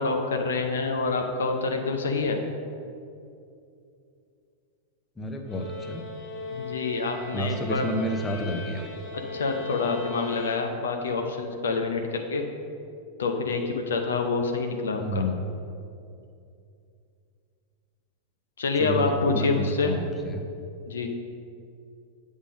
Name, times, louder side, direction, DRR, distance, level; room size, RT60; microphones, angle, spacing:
voice 1, 0.0-2.4 6.5-7.8 9.3-12.4 13.2-15.2 18.6-19.9 20.9-21.1, left 4 dB, 65° left, 3 dB, 0.7 m, -27 dB
voice 2, 5.2-6.0 7.3-8.9 15.0-15.4 18.7-20.5, equal, 15° left, 3 dB, 0.7 m, -30 dB
sound 1, 5.4-11.1, left 2 dB, 50° left, 1.6 m, -39 dB
8.1 x 3.6 x 6.3 m, 2.5 s
figure-of-eight pair, 90°, 0 cm